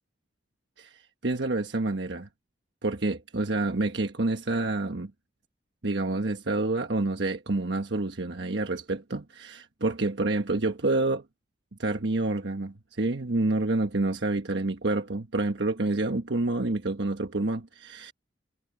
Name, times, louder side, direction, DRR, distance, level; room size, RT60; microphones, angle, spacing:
voice 1, 0.8-2.3 2.8-5.1 5.8-11.2 11.8-18.1, right 2 dB, 80° right, 1.2 m, -28 dB
head